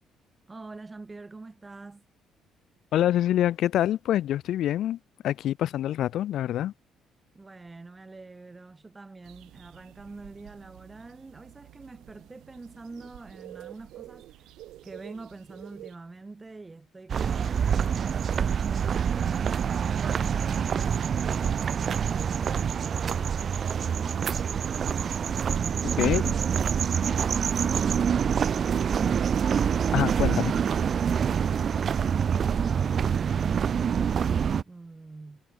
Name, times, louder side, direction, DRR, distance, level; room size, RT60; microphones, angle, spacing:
voice 1, 0.5-2.1 7.3-14.5 14.8-18.2 18.9-24.3 24.9-30.1 31.2-35.4, right 3 dB, 20° right, 3.7 m, -45 dB
voice 2, 2.9-5.0 5.2-6.7 26.0-26.3 29.9-30.5, left 12 dB, 70° left, 0.3 m, -25 dB
sound 1, 9.2-16.0, right 15 dB, 80° right, 6.7 m, -49 dB
sound 2, 17.1-34.6, right 7 dB, 45° right, 0.9 m, -26 dB
cardioid pair, 105°, 0 cm